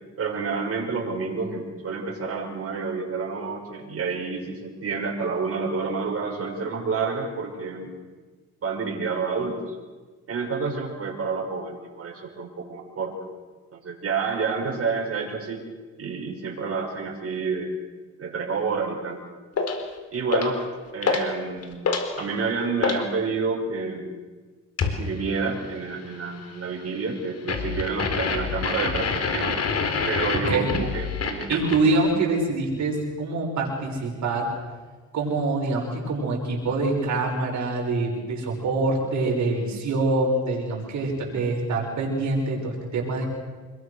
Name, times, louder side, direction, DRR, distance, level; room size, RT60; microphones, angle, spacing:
voice 1, 0.2-7.9 8.6-9.8 10.3-13.2 13.7-15.6 16.0-17.7 18.2-19.2 20.1-20.6 20.9-21.8 22.2-24.1 24.8-29.6 30.1-31.7, right 4 dB, 50° right, -1 dB, 6.2 m, -29 dB
sound 1, 19.6-19.8 20.3-20.6 21.0-21.3 21.6-23.0 24.8-25.0 27.5-31.9, left 5 dB, 55° left, 4.0 m, -26 dB
voice 2, 30.3-30.7 31.5-34.5 35.1-43.3, right 2 dB, 70° right, -1 dB, 6.1 m, -25 dB
26.5 x 21.5 x 6.5 m, 1.3 s
cardioid pair, 90°, 30 cm